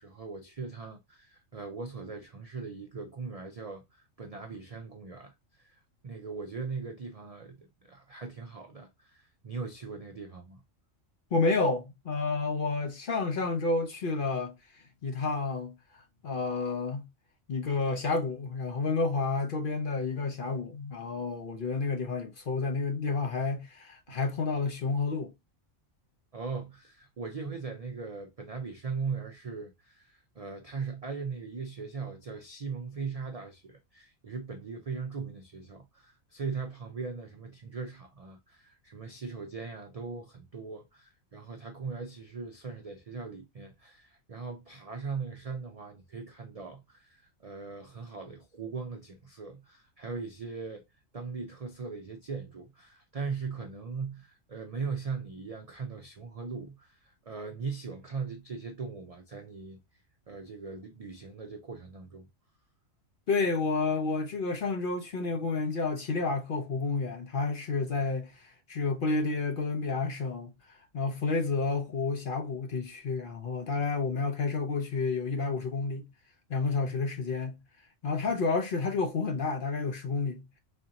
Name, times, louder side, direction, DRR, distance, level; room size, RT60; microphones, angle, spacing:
voice 1, 0.0-5.8 6.0-10.6 26.3-50.8 51.1-59.8 60.3-62.3, right 5 dB, 55° right, 0.4 m, -39 dB
voice 2, 11.3-15.7 16.2-17.0 17.5-25.3 63.3-70.5 70.9-76.1 76.5-77.6 78.0-80.5, left 3 dB, 50° left, 0.7 m, -30 dB
4.2 x 2.6 x 2.8 m
omnidirectional pair, 1.3 m